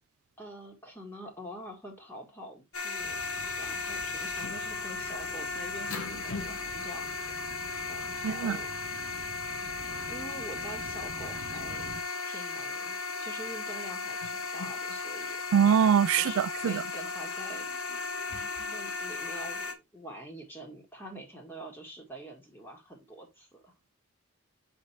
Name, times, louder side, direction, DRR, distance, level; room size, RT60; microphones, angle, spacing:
voice 1, 0.4-3.2 3.6-7.2 7.9-8.7 10.1-11.9 12.2-15.4 16.1-18.0 18.7-23.7, equal, 10° left, 2.0 m, -45 dB
sound 1, 2.7-19.7, left 4 dB, 85° left, 1.3 m, -36 dB
sound 2, 3.0-12.0, right 2 dB, 65° right, 0.8 m, -48 dB
voice 2, 8.2-8.6 15.5-16.8, right 8 dB, 80° right, 0.3 m, -23 dB
7.4 x 4.5 x 3.3 m
head